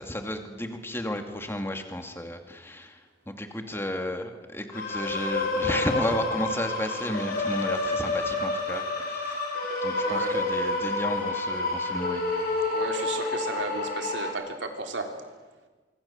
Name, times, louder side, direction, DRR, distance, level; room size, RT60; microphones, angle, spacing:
voice 1, 0.0-3.0 3.3-8.8 9.1-9.4 9.8-12.2, left 1 dB, 15° left, 5 dB, 2.4 m, -32 dB
sound 1, 4.7-14.3, left 2 dB, 55° left, 5.4 m, -29 dB
voice 2, 10.0-10.4 12.7-15.1, right 2 dB, 85° right, 4 dB, 3.5 m, -33 dB
25.5 x 25.0 x 7.2 m, 1.3 s
head